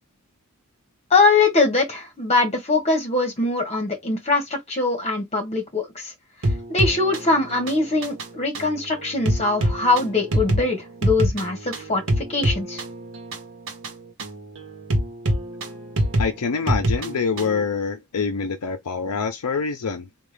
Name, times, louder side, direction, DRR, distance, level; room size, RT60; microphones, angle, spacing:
voice 1, 1.1-6.1 6.7-12.8, left 3 dB, 30° left, 1.4 m, -22 dB
sound 1, 6.4-17.6, equal, 60° right, 1.1 m, -26 dB
voice 2, 16.2-20.1, left 5 dB, 85° left, 0.6 m, -25 dB
3.6 x 2.4 x 3.3 m
head